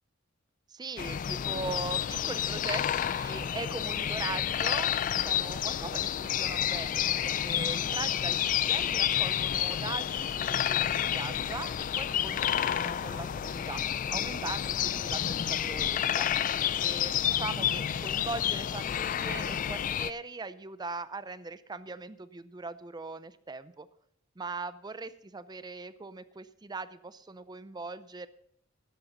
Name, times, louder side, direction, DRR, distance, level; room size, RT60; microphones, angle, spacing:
voice 1, 0.7-13.8 14.1-16.3 16.8-23.9 24.4-28.3, right 3 dB, 20° right, 14 dB, 0.5 m, -40 dB
sound 1, 1.0-20.1, left 10 dB, 40° left, 0.3 m, -30 dB
13.0 x 11.0 x 4.0 m, 0.68 s
head